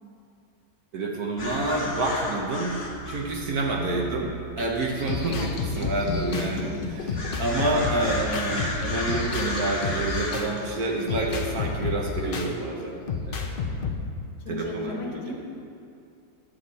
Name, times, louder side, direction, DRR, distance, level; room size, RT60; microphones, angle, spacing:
voice 1, 0.9-13.0 13.3-13.8 14.5-15.3, right 2 dB, 65° right, 0 dB, 1.4 m, -28 dB
sound 1, 1.4-10.4, left 1 dB, 40° left, 1.4 m, -34 dB
sound 2, 4.6-10.6 11.1-12.5 13.1-13.9, left 5 dB, 60° left, 0.5 m, -31 dB
voice 2, 5.2-5.5 14.5-15.3, left 3 dB, 75° left, 0 dB, 1.8 m, -36 dB
9.7 x 7.9 x 4.1 m, 2.6 s
omnidirectional pair, 1.8 m